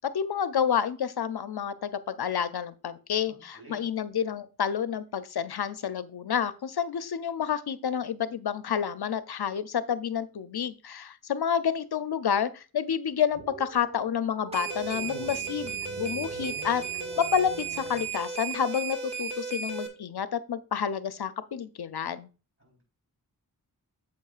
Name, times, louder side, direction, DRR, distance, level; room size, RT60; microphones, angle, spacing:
voice 1, 0.1-16.8 17.2-22.3, left 8 dB, 75° left, 13 dB, 0.6 m, -29 dB
voice 2, 3.3-3.9 22.6-22.8, right 3 dB, 35° right, -1 dB, 4.1 m, -52 dB
sound 1, 13.3-18.1, right 5 dB, 90° right, 1.3 m, -44 dB
sound 2, 14.5-19.9, right 6 dB, 15° right, 1.7 m, -35 dB
8.4 x 7.7 x 2.4 m, 0.33 s
wide cardioid pair, 60°, 39 cm